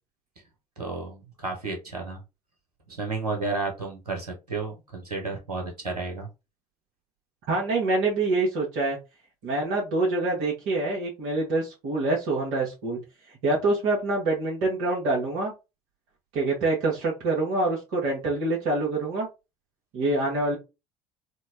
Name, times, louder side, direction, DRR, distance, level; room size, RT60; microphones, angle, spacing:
voice 1, 0.8-2.2 2.9-6.3, right 3 dB, 80° right, 1 dB, 1.0 m, -32 dB
voice 2, 7.5-9.0 9.4-13.0 13.4-15.5 16.3-19.3 19.9-20.6, right 2 dB, 60° right, -2 dB, 1.4 m, -25 dB
4.3 x 2.2 x 2.7 m, 0.26 s
figure-of-eight pair, 65°, 19 cm